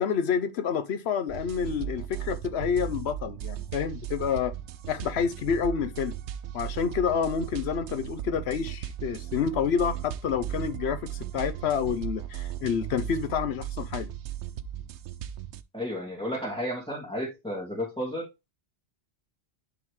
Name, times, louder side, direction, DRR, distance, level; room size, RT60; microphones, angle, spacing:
voice 1, 0.0-4.5 4.9-6.1 6.5-14.1, left 7 dB, 70° left, 1.0 m, -28 dB
sound 1, 1.3-15.6, right 10 dB, 85° right, 0.9 m, -37 dB
voice 2, 15.7-18.3, equal, 5° left, 2.6 m, -32 dB
10.5 x 3.6 x 3.2 m
omnidirectional pair, 1.1 m